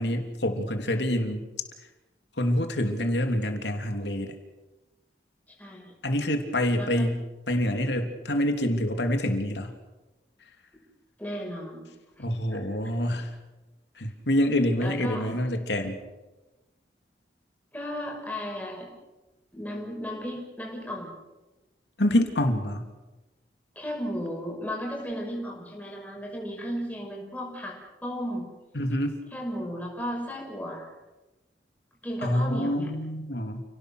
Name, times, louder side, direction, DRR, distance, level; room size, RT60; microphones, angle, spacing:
voice 1, 0.0-1.5 2.4-4.4 6.0-9.7 12.2-13.3 14.0-16.0 22.0-22.9 28.7-29.2 32.2-33.6, left 1 dB, 85° left, 5 dB, 3.1 m, -26 dB
voice 2, 5.6-5.9 6.8-7.1 11.2-11.8 12.2-12.6 14.8-15.4 17.7-18.9 19.5-21.1 23.8-27.8 28.0-28.5 29.3-30.9 32.0-32.9, equal, 10° left, -1 dB, 5.7 m, -34 dB
30.0 x 18.0 x 6.7 m, 1.1 s
head